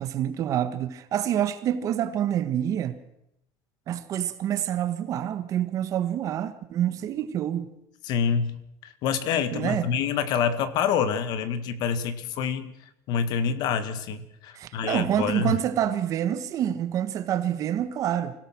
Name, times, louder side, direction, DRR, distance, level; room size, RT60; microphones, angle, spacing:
voice 1, 0.0-3.0 3.9-7.7 9.5-9.9 14.5-18.3, right 10 dB, 45° right, 1.6 m, -27 dB
voice 2, 8.0-12.7 13.1-15.6, left 7 dB, 60° left, 1.7 m, -27 dB
25.5 x 17.5 x 6.2 m
cardioid pair, 140°, 8 cm